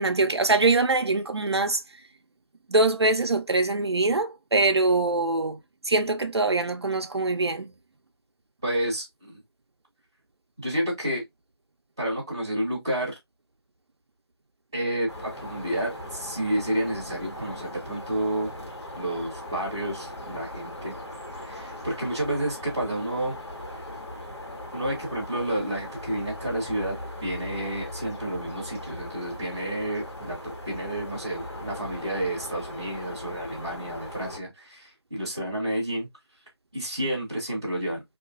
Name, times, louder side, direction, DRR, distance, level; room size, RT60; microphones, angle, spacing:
voice 1, 0.0-1.8 2.7-5.6 5.8-7.7, right 3 dB, 75° right, 0.5 m, -23 dB
voice 2, 8.6-9.4 10.6-11.2 12.0-13.1 14.7-18.5 18.9-21.0 21.4-23.3 24.7-26.9 27.2-36.1 36.7-38.0, right 1 dB, 10° right, 0.7 m, -30 dB
sound 1, 15.1-34.4, left 1 dB, 85° left, 1.2 m, -39 dB
2.8 x 2.4 x 2.3 m
figure-of-eight pair, 170°, 14 cm